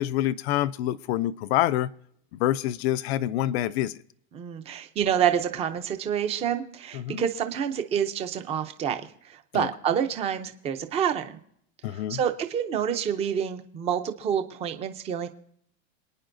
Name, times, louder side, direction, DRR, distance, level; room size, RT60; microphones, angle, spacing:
voice 1, 0.0-1.9 2.4-3.9 6.9-7.2 9.5-9.7 11.8-12.2, left 13 dB, 55° left, 0.5 m, -26 dB
voice 2, 4.3-11.4 11.9-15.3, right 8 dB, 15° right, 0.6 m, -28 dB
27.5 x 9.6 x 2.6 m
supercardioid pair, 170°, 37 cm